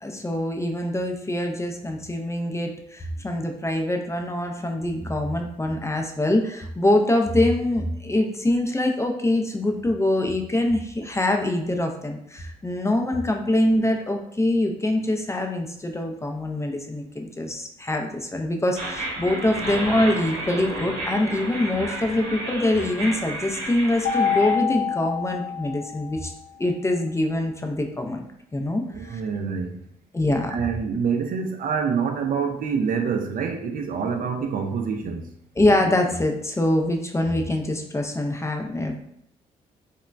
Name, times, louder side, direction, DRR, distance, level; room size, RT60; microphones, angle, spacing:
voice 1, 0.0-26.3 26.6-28.2 28.5-29.2 30.1-30.5 35.6-39.0, left 1 dB, 15° left, 3 dB, 0.4 m, -24 dB
sound 1, 18.8-24.5, right 1 dB, 80° right, 0.8 m, -32 dB
Mallet percussion, 24.0-26.3, left 8 dB, 65° left, 0.5 m, -26 dB
voice 2, 28.9-29.7 30.5-35.3, right 6 dB, 50° right, 4 dB, 0.4 m, -26 dB
2.9 x 2.2 x 2.3 m, 0.70 s
hypercardioid pair, 40°, 18 cm